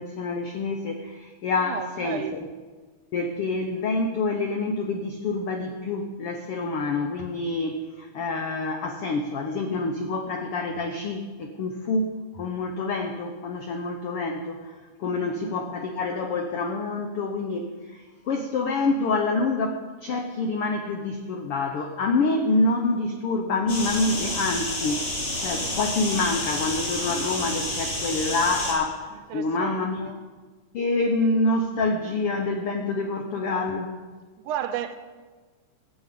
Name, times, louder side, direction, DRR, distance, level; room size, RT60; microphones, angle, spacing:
voice 1, 0.0-2.2 3.1-30.1 30.7-34.0, left 3 dB, 85° left, 5 dB, 1.2 m, -27 dB
voice 2, 1.6-2.4 15.0-15.6 29.3-30.2 34.4-35.0, right 10 dB, 80° right, 11 dB, 2.0 m, -34 dB
sound 1, 23.7-28.7, left 1 dB, 40° left, 4.6 m, -30 dB
14.5 x 8.5 x 7.6 m, 1.4 s
omnidirectional pair, 3.9 m